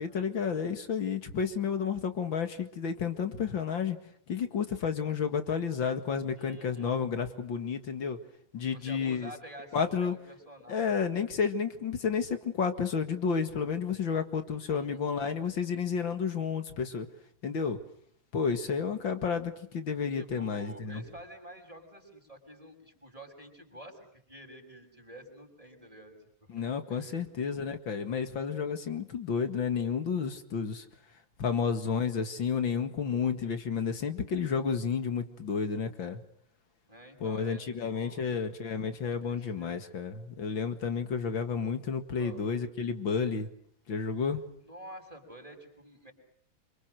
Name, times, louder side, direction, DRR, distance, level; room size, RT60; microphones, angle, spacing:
voice 1, 0.0-4.0 4.3-8.2 8.5-9.3 9.7-10.1 10.7-17.1 17.4-17.8 18.3-21.0 26.5-30.8 31.4-36.2 37.2-43.5 43.9-44.4, left 6 dB, 45° left, 8 dB, 2.3 m, -31 dB
voice 2, 6.4-7.0 8.7-11.1 14.7-15.3 20.1-26.1 26.4-26.6 26.9-27.2 31.4-31.7 36.9-38.4 39.2-39.7 42.2-42.5 44.6-46.1, right 1 dB, 10° right, 3 dB, 6.3 m, -49 dB
28.0 x 26.0 x 6.6 m, 0.66 s
omnidirectional pair, 3.4 m